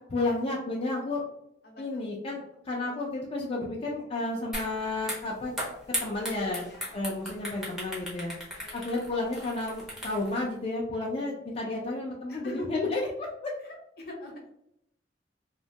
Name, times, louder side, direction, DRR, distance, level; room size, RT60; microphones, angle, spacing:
voice 1, 0.1-1.2 1.8-5.5 6.0-6.7 6.9-13.5, left 2 dB, 35° left, -3 dB, 0.4 m, -32 dB
voice 2, 1.6-2.0 2.8-2.9 6.6-7.0 8.6-8.9 12.3-12.7 13.6-14.5, left 1 dB, 60° left, 1 dB, 0.7 m, -45 dB
sound 1, 4.5-4.7 5.0-10.4, equal, ahead, 0.7 m, -36 dB
2.7 x 2.1 x 2.7 m, 0.76 s
head